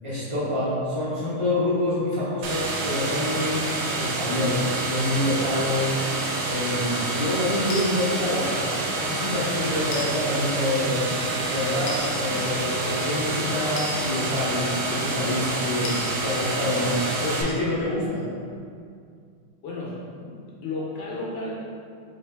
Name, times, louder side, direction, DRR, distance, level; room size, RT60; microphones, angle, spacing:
voice 1, 0.0-3.7 4.0-5.9 6.4-11.0 11.4-18.2, left 1 dB, 55° right, -10 dB, 0.3 m, -27 dB
sound 1, 2.4-17.4, right 2 dB, 85° right, 0.9 m, -28 dB
sound 2, 7.7-7.9 9.9-10.1 11.9-12.1 13.8-13.9 15.8-16.1, left 3 dB, 85° left, 1.4 m, -33 dB
voice 2, 19.6-21.5, left 2 dB, 65° left, -6 dB, 1.3 m, -33 dB
3.9 x 3.6 x 3.3 m, 2.3 s
omnidirectional pair, 2.3 m